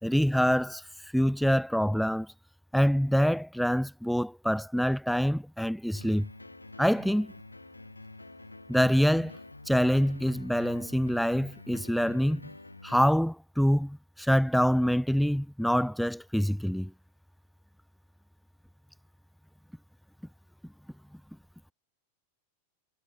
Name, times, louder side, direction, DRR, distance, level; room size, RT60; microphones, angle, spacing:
voice 1, 0.0-0.8 1.1-2.3 2.7-6.3 6.8-7.3 8.7-9.3 9.7-12.5 12.8-16.9, equal, ahead, 1.6 m, -25 dB
sound 1, 5.9-13.1, left 2 dB, 85° left, 6.7 m, -48 dB
figure-of-eight pair, 90°, 0 cm